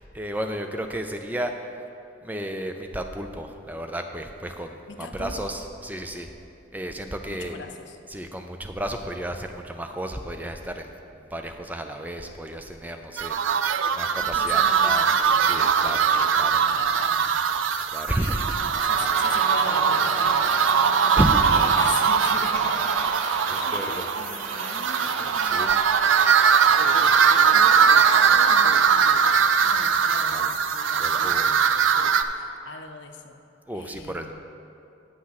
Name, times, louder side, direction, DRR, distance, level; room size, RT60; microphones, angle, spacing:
voice 1, 0.1-1.5 2.2-6.3 6.7-7.6 8.1-10.9 11.3-15.1 15.4-16.1 16.4-16.6 17.9-18.6 21.2-21.7 23.5-24.0 25.4-25.7 30.3-31.7 33.7-34.3, right 1 dB, 10° right, 5 dB, 0.4 m, -32 dB
voice 2, 4.9-5.5 7.3-8.0 14.2-15.4 16.0-17.5 18.1-21.2 21.4-25.9 26.3-26.4 26.8-31.8 32.3-33.4 33.7-34.3, left 4 dB, 70° left, 6 dB, 0.6 m, -40 dB
sound 1, 13.2-32.2, right 6 dB, 85° right, 0.4 m, -21 dB
Crowd, 18.7-28.2, equal, 35° right, 1.6 m, -37 dB
8.6 x 6.0 x 5.8 m, 2.6 s
head